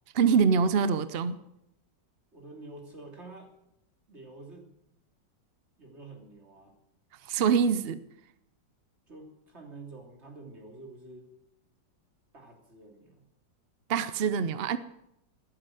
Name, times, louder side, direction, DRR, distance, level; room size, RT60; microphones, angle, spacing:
voice 1, 0.1-1.4 7.2-8.0 13.9-14.8, right 6 dB, 65° right, 13 dB, 0.6 m, -24 dB
voice 2, 2.3-3.5 4.1-4.7 5.8-6.7 9.1-11.3 12.3-13.3, right 2 dB, 35° right, 2 dB, 3.4 m, -48 dB
14.0 x 11.0 x 9.2 m, 0.81 s
omnidirectional pair, 2.0 m